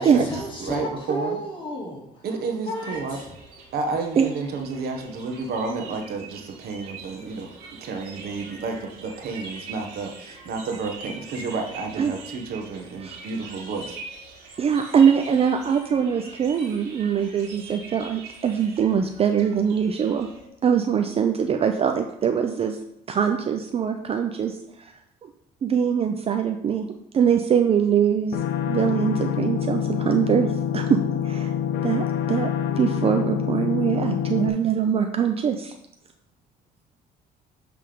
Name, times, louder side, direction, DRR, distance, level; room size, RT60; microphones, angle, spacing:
voice 1, 0.0-2.4 2.7-3.7 6.9-7.9 10.1-10.3, equal, 30° left, -2 dB, 2.2 m, -35 dB
voice 2, 0.6-1.4 2.2-3.2 3.7-7.5 7.8-14.3, right 4 dB, 65° right, 3 dB, 1.1 m, -31 dB
sound 1, 2.9-20.5, right 4 dB, 90° right, 2.0 m, -43 dB
voice 3, 14.6-20.3 20.6-22.8 23.1-25.3 25.6-31.5 31.8-35.7, right 7 dB, 35° right, 6 dB, 0.5 m, -23 dB
sound 2, 28.3-34.5, left 9 dB, 90° left, 0.7 m, -26 dB
7.6 x 3.4 x 5.1 m, 0.78 s
cardioid pair, 110°, 17 cm